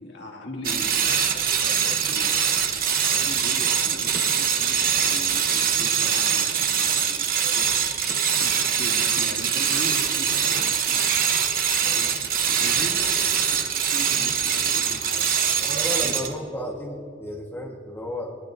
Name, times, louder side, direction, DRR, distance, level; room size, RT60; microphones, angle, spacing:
voice 1, 0.0-2.4 3.1-7.7 8.4-11.2 11.8-12.1 12.5-16.4, left 1 dB, 60° left, -1 dB, 2.3 m, -40 dB
sound 1, 0.6-16.4, right 7 dB, 50° right, 0.9 m, -23 dB
voice 2, 15.6-18.4, left 1 dB, 10° left, -1 dB, 1.4 m, -33 dB
21.5 x 20.5 x 2.6 m, 2.7 s
head